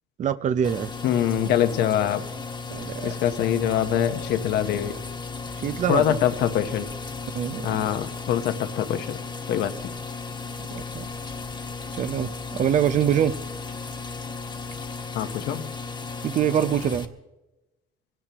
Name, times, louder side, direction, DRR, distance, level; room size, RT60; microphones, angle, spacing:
voice 1, 0.2-0.9 2.7-3.1 5.5-6.2 7.3-7.7 10.7-11.1 11.9-13.3 16.2-17.1, right 9 dB, 45° right, 11 dB, 0.7 m, -24 dB
sound 1, 0.6-17.0, left 4 dB, 25° left, 1.4 m, -35 dB
voice 2, 1.0-2.2 3.0-5.0 5.9-6.9 7.6-9.2 9.5-9.7 15.1-15.7, left 10 dB, 80° left, 8 dB, 1.2 m, -24 dB
25.0 x 17.0 x 3.0 m, 1.0 s
cardioid pair, 110°, 17 cm